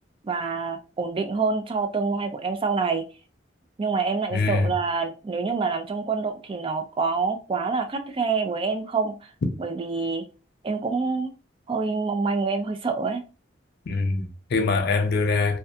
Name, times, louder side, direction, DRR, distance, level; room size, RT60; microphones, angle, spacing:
voice 1, 0.2-3.0 3.8-9.2 9.6-10.2 10.6-11.3 11.7-13.2, right 4 dB, 30° right, 0.3 m, -26 dB
voice 2, 4.3-4.7 13.9-15.6, left 3 dB, 60° left, 0.5 m, -23 dB
2.3 x 2.2 x 2.6 m
head